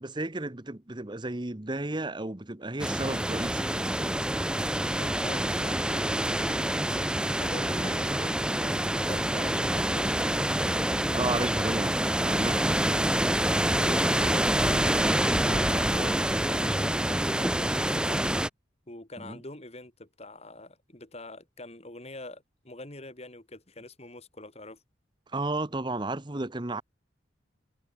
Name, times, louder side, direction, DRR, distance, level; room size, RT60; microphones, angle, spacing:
voice 1, 0.0-4.1 7.7-8.0 11.1-12.7 19.2-19.4 25.3-26.8, right 2 dB, 25° right, 1.1 m, -33 dB
sound 1, 2.8-18.5, right 1 dB, 5° right, 0.9 m, -27 dB
voice 2, 4.9-6.6 7.4-10.4 13.7-14.8 15.4-18.2 18.9-24.8, left 2 dB, 30° left, 2.9 m, -44 dB
head